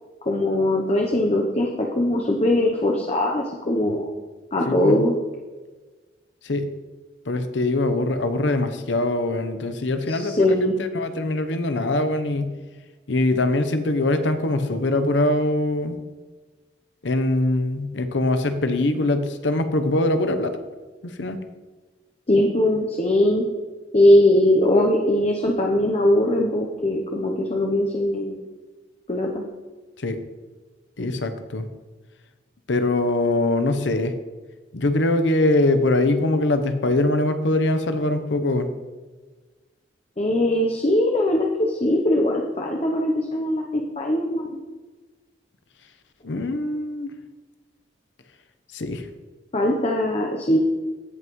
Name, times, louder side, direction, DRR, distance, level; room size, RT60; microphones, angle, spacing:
voice 1, 0.2-4.1 4.5-5.1 10.1-10.7 22.3-23.4 23.9-28.4 29.1-29.4 40.2-44.6 49.5-50.6, left 1 dB, 35° left, 0 dB, 0.8 m, -21 dB
voice 2, 4.7-5.0 6.4-6.7 7.3-12.5 13.1-16.0 17.0-20.6 21.2-21.4 30.0-30.2 31.0-31.7 32.7-34.1 34.7-38.7 46.2-47.1 48.7-49.0, left 2 dB, 75° left, 9 dB, 0.8 m, -22 dB
16.0 x 5.5 x 3.1 m, 1.3 s
head